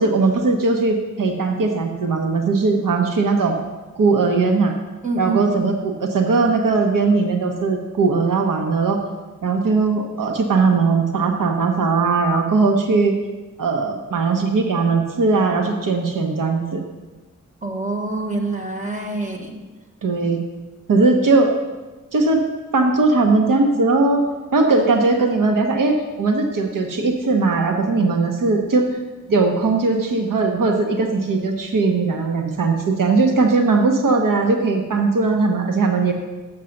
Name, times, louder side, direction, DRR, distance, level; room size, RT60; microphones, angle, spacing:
voice 1, 0.0-3.6 4.0-4.7 5.2-9.0 9.4-13.1 13.6-16.8 20.0-20.4 20.9-21.5 22.1-22.4 22.7-24.2 24.5-28.8 29.3-36.1, right 3 dB, 80° right, 3 dB, 1.0 m, -19 dB
voice 2, 5.0-5.6 17.6-19.6, right 3 dB, 25° right, 2 dB, 1.2 m, -25 dB
7.2 x 6.9 x 6.4 m, 1.2 s
wide cardioid pair, 170°, 32 cm